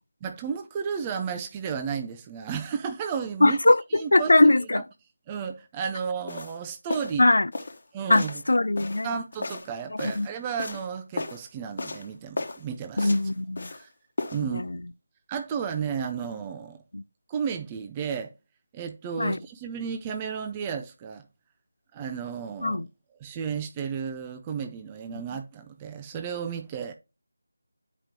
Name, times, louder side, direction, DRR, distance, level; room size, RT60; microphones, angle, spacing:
voice 1, 0.2-3.6 3.9-4.3 4.7-4.8 5.3-7.2 7.9-8.4 9.0-13.2 13.7-13.9 14.3-14.6 15.3-16.8 17.3-18.3 18.7-21.3 21.9-22.9 23.2-26.9, right 7 dB, 15° right, 0.5 m, -33 dB
voice 2, 3.4-4.8 7.2-7.5 8.1-9.1 10.0-10.3 13.0-13.7 14.5-14.8 16.9-17.0 19.2-19.4 22.6-22.9, left 2 dB, 65° left, 0.4 m, -21 dB
sound 1, 6.3-6.6 6.9-7.2 7.5-7.8 8.1-8.4 8.8-10.3 10.6-10.9 11.2-11.5 11.8-12.1 12.4-12.6 13.0-13.8 14.2-14.4, left 3 dB, 50° left, 1.2 m, -34 dB
9.7 x 5.1 x 2.9 m
figure-of-eight pair, 165°, 0 cm